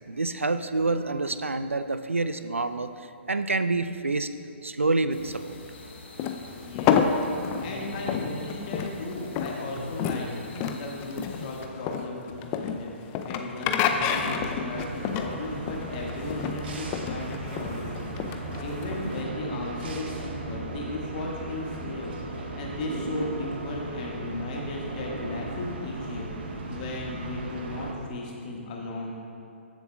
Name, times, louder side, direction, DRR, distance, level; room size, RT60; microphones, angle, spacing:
voice 1, 0.1-4.3 4.6-5.6, right 3 dB, 85° right, 11 dB, 0.4 m, -27 dB
sound 1, 5.1-11.7, left 2 dB, 55° left, 1.2 m, -42 dB
sound 2, 6.2-19.2, left 7 dB, 25° left, 0.4 m, -29 dB
voice 2, 6.5-7.0 7.6-29.1, left 2 dB, 40° left, -2 dB, 1.6 m, -36 dB
sound 3, 14.0-27.9, right 2 dB, 50° right, 0.9 m, -36 dB
14.0 x 7.0 x 2.3 m, 2.5 s
figure-of-eight pair, 125°, 7 cm